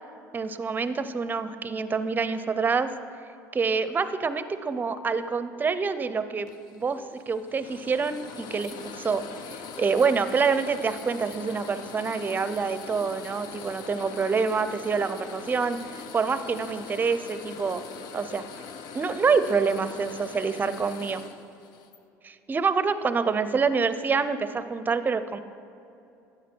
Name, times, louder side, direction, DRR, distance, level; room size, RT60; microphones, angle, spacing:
voice 1, 0.3-2.9 3.5-9.2 9.8-17.8 18.1-18.4 18.9-21.2 22.2-25.4, right 5 dB, 25° right, 12 dB, 0.6 m, -26 dB
sound 1, 6.5-22.0, left 6 dB, 65° left, 0.7 m, -42 dB
12.5 x 9.0 x 4.5 m, 2.7 s
supercardioid pair, 95°, 8 cm